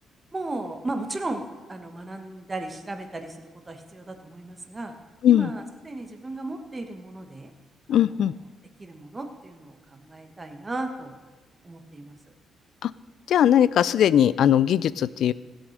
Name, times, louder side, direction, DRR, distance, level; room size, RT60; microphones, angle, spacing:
voice 1, 0.3-4.9 5.2-7.5 7.9-8.2 8.8-11.2 11.6-12.1, right 2 dB, 20° right, 5 dB, 1.3 m, -35 dB
voice 2, 7.9-8.3 12.8-12.9 13.3-15.3, left 10 dB, 70° left, 18 dB, 0.4 m, -19 dB
16.0 x 6.3 x 6.5 m, 1.3 s
cardioid pair, 90°, 0 cm